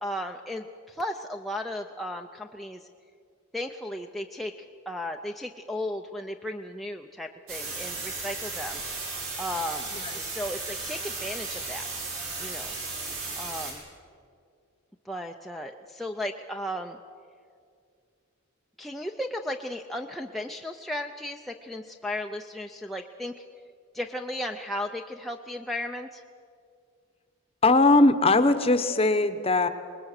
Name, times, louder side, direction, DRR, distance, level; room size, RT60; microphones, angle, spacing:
voice 1, 0.0-2.9 3.5-9.9 10.1-12.1 12.4-12.7 13.3-13.8 15.0-17.0 18.8-23.3 23.9-26.2, left 1 dB, ahead, 1 dB, 0.5 m, -35 dB
sound 1, 7.5-13.7, right 3 dB, 90° right, 6.7 m, -35 dB
voice 2, 9.9-10.3 27.6-29.7, left 2 dB, 25° left, 10 dB, 0.9 m, -20 dB
26.0 x 20.5 x 6.6 m, 2.3 s
head